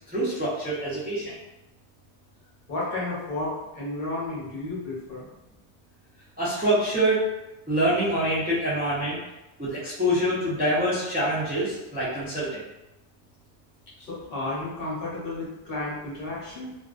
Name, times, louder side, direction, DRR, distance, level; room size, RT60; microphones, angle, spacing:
voice 1, 0.1-1.4 6.4-7.3 7.7-9.2 9.6-12.6, right 1 dB, 15° right, -9 dB, 0.4 m, -25 dB
voice 2, 2.7-5.3 14.0-16.7, left 2 dB, 60° left, -7 dB, 1.0 m, -32 dB
2.4 x 2.1 x 2.4 m, 0.95 s
omnidirectional pair, 1.2 m